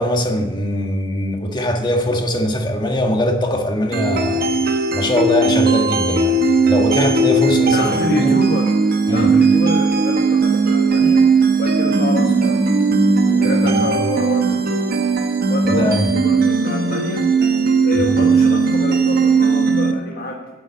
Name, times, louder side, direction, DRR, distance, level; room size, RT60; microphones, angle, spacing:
voice 1, 0.0-8.4 9.1-9.3 13.6-14.0 15.7-16.1 18.0-18.2, left 1 dB, 25° left, 1.5 m, -21 dB
sound 1, 3.9-19.9, right 4 dB, 50° right, 1.0 m, -17 dB
voice 2, 7.7-8.8 9.1-11.3 11.6-12.6 13.2-15.0 15.5-20.5, left 2 dB, 50° left, 1.5 m, -27 dB
9.9 x 7.6 x 8.5 m
head